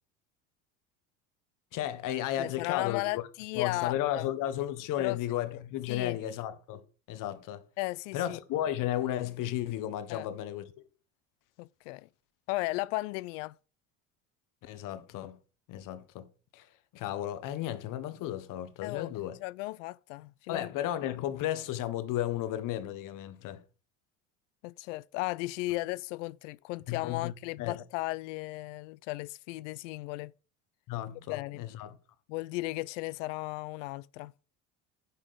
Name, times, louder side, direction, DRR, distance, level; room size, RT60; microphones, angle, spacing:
voice 1, 1.7-3.2 3.5-6.8 7.1-7.6 8.1-10.9 14.6-15.4 15.7-16.3 16.5-16.7 16.9-19.4 20.5-23.6 26.9-27.3 27.6-27.8 30.9-32.0, left 12 dB, 60° left, 1.2 m, -34 dB
voice 2, 2.4-4.2 5.0-5.2 5.9-6.2 7.8-8.4 10.1-10.3 11.6-12.1 12.5-13.5 18.8-19.1 19.4-20.7 24.6-30.3 31.3-31.6 32.3-34.3, left 20 dB, 80° left, 0.5 m, -35 dB
10.0 x 3.7 x 6.6 m
supercardioid pair, 85°, 37 cm